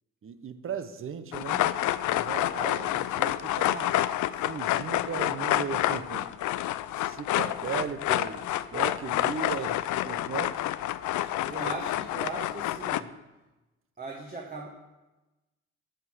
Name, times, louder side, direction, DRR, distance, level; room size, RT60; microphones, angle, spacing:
voice 1, 0.2-1.7 2.0-4.0 4.4-6.3 6.9-9.7 10.0-10.6 11.4-11.5, right 7 dB, 45° right, 11 dB, 0.9 m, -37 dB
sound 1, 1.3-13.0, left 14 dB, 75° left, 0.5 m, -28 dB
voice 2, 11.5-13.1 14.0-14.7, right 3 dB, 30° right, 0 dB, 1.5 m, -38 dB
13.0 x 5.7 x 6.3 m, 1.1 s
cardioid pair, 90°, 30 cm